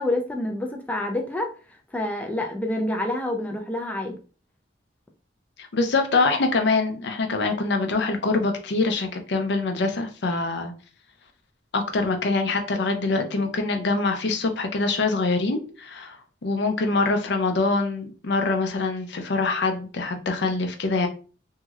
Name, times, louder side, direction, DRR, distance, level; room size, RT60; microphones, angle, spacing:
voice 1, 0.0-1.5 1.9-4.2, left 1 dB, 10° left, 3 dB, 0.4 m, -27 dB
voice 2, 5.6-10.7 11.7-16.2 16.4-21.1, left 3 dB, 70° left, 5 dB, 0.5 m, -24 dB
3.0 x 2.7 x 2.3 m, 0.37 s
head